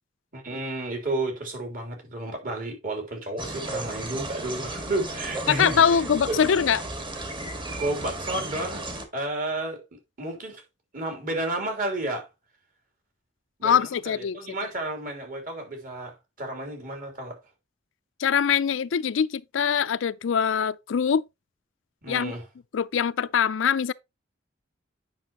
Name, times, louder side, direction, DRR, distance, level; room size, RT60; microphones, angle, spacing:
voice 1, 0.3-6.0 6.3-6.4 7.8-8.8 9.1-9.8 10.2-10.6 10.9-12.3 13.6-17.4 22.0-22.4, right 2 dB, 50° right, 3.3 m, -32 dB
sound 1, 3.4-9.1, right 2 dB, 25° right, 1.6 m, -34 dB
voice 2, 5.5-6.8 13.6-14.4 18.2-21.2 22.1-22.3 22.7-23.9, left 7 dB, 80° left, 0.4 m, -23 dB
9.2 x 5.9 x 2.9 m
head